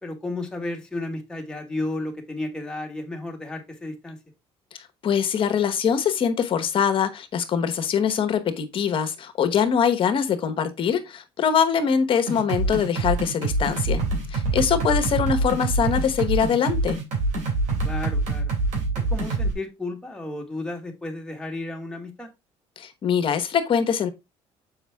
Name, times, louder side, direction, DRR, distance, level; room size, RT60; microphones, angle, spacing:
voice 1, 0.0-4.2 14.7-15.0 17.8-18.5 19.0-22.3, left 2 dB, 5° left, 1.8 m, -33 dB
voice 2, 5.0-14.0 14.3-17.0 22.8-24.1, left 7 dB, 45° left, 1.1 m, -23 dB
sound 1, 12.3-19.5, right 2 dB, 80° right, 3.2 m, -25 dB
7.1 x 5.2 x 3.5 m
cardioid pair, 125°, 12 cm